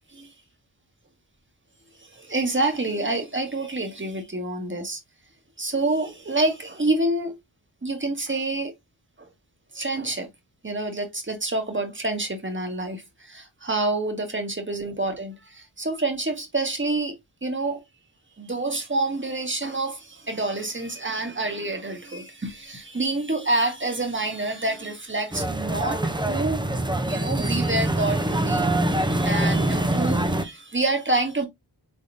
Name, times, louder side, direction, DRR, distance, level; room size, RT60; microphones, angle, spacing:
voice 1, 2.0-5.0 5.6-7.4 7.8-8.7 9.2-9.3 9.7-10.3 10.6-17.2 17.4-17.8 18.4-26.7 27.0-31.5, right 2 dB, 30° right, 1.3 m, -27 dB
sound 1, 25.3-30.4, right 1 dB, 10° right, 0.6 m, -24 dB
3.7 x 3.6 x 2.6 m
cardioid pair, 50°, 42 cm